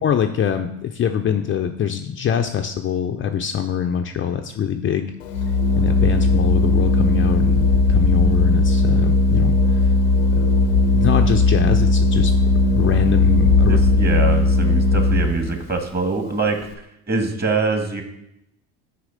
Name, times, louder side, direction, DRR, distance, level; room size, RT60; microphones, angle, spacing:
voice 1, 0.0-5.1 5.8-9.9 10.4-10.5 10.9-12.3 12.7-13.8, left 8 dB, 30° left, 5 dB, 0.5 m, -24 dB
Organ, 5.2-15.5, left 3 dB, 80° left, 0.8 m, -17 dB
voice 2, 13.7-16.6 17.1-18.0, right 3 dB, 25° right, 4 dB, 1.6 m, -23 dB
6.5 x 4.7 x 5.1 m, 0.81 s
hypercardioid pair, 70°, 38 cm